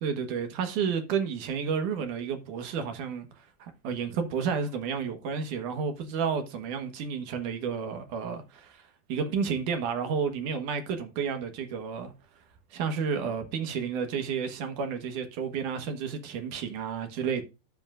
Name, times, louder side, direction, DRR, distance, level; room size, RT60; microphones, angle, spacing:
voice 1, 0.0-12.1 12.7-17.4, right 6 dB, 60° right, 2.3 m, -31 dB
12.5 x 8.0 x 2.5 m
omnidirectional pair, 4.9 m